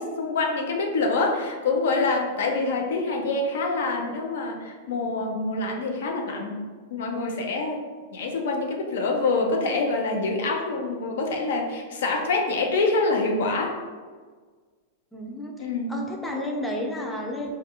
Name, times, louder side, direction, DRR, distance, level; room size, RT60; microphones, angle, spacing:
voice 1, 0.0-6.6 6.9-7.9 8.1-13.7 15.6-16.0, left 3 dB, 75° left, 2 dB, 0.4 m, -26 dB
voice 2, 15.1-17.5, left 1 dB, 5° left, 0 dB, 0.4 m, -32 dB
2.3 x 2.2 x 2.8 m, 1.5 s
supercardioid pair, 140°, 0 cm